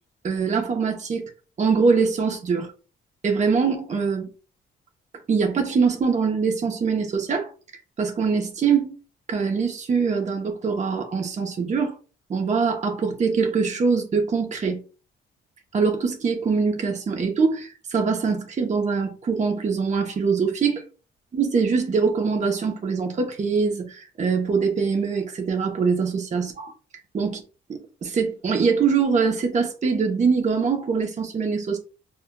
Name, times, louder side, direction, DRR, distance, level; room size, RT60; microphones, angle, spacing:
voice 1, 0.2-1.3 1.6-2.7 3.2-4.3 5.3-7.5 8.0-9.0 9.3-12.0 12.3-14.8 15.7-20.8 21.3-26.7 27.1-27.4 27.7-31.8, right 5 dB, 35° right, 0.8 m, -23 dB
4.3 x 2.2 x 2.2 m
cardioid pair, 90°, 20 cm